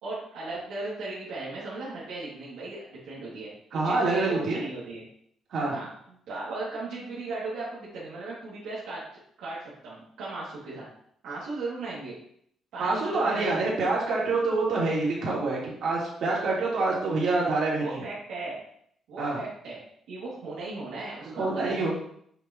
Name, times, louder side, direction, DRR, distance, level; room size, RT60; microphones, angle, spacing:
voice 1, 0.0-3.5 3.8-5.0 5.7-5.9 6.3-9.0 9.4-10.9 11.2-12.2 12.7-13.6 17.8-18.6 19.1-19.8 20.1-21.9, right 2 dB, 90° right, -8 dB, 2.2 m, -36 dB
voice 2, 3.7-4.6 5.5-5.7 12.8-18.0 19.2-19.4 21.3-21.9, right 3 dB, 65° right, -5 dB, 3.0 m, -26 dB
7.4 x 5.8 x 2.9 m, 0.67 s
cardioid pair, 90°, 0 cm